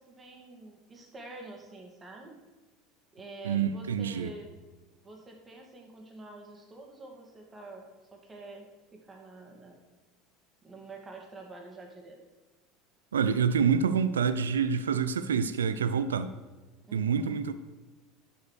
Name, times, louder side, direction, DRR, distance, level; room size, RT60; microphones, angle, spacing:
voice 1, 0.0-2.4 3.1-4.5 5.0-8.7 8.9-9.8 10.6-12.2 16.9-17.4, right 2 dB, 25° right, 1 dB, 2.4 m, -47 dB
voice 2, 3.4-4.3 13.1-16.3 16.9-17.5, right 6 dB, 80° right, 12 dB, 0.5 m, -27 dB
11.5 x 5.7 x 6.5 m, 1.2 s
hypercardioid pair, 75°, 0 cm